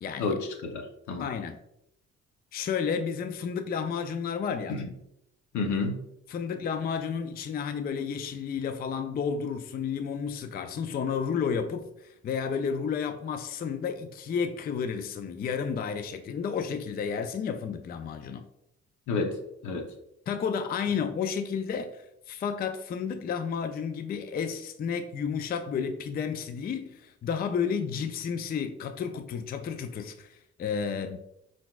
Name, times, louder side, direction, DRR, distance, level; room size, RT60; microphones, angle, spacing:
voice 1, 0.2-1.3 4.7-4.8 5.5-6.0 19.1-19.4 19.6-19.9, left 3 dB, 70° left, 0.9 m, -30 dB
voice 2, 1.2-1.6 2.5-4.8 6.3-18.4 20.3-31.2, left 6 dB, 30° left, 0.4 m, -31 dB
4.7 x 3.9 x 2.3 m
cardioid pair, 90°, 30 cm